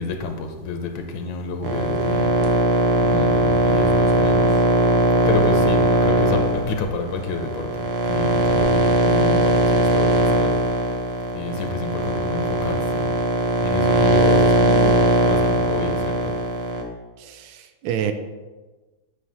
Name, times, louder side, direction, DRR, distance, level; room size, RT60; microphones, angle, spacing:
voice 1, 0.0-2.6 3.0-4.6 4.9-5.0 5.3-10.9 11.3-13.1 13.6-16.4, left 4 dB, 85° left, 5 dB, 1.5 m, -29 dB
sound 1, 1.6-16.8, right 1 dB, 60° right, 1.3 m, -19 dB
voice 2, 17.2-18.1, right 9 dB, 90° right, 8 dB, 1.4 m, -28 dB
8.4 x 3.3 x 5.5 m, 1.2 s
omnidirectional pair, 2.1 m